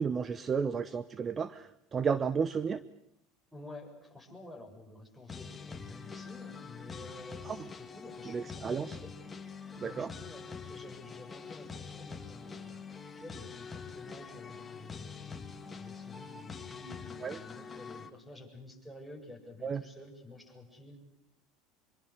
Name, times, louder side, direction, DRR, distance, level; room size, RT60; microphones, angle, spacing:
voice 1, 0.0-2.8 8.3-8.9 9.8-10.1 17.2-17.4 19.6-19.8, right 6 dB, 25° right, 15 dB, 1.0 m, -32 dB
voice 2, 3.5-9.1 9.5-21.0, left 2 dB, 5° right, 6 dB, 8.0 m, -50 dB
sound 1, 5.3-18.1, left 5 dB, 15° left, 2.5 m, -45 dB
26.0 x 23.0 x 8.3 m, 0.71 s
supercardioid pair, 115°, 0 cm